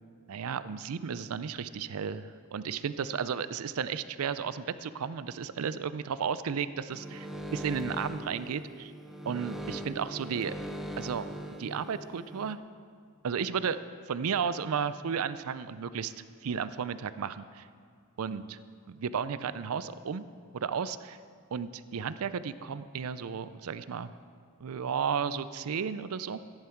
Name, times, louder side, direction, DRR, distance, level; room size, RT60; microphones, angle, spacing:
voice 1, 0.3-8.9 9.3-10.5 11.0-11.3 11.6-12.6 13.2-13.8 14.1-16.1 16.4-17.7 18.2-18.6 18.9-20.3 20.5-21.2 21.5-24.1 24.6-26.4, right 6 dB, 70° right, 14 dB, 0.4 m, -33 dB
sound 1, 6.9-12.5, equal, ahead, 0.7 m, -40 dB
14.0 x 10.5 x 4.5 m, 2.1 s
head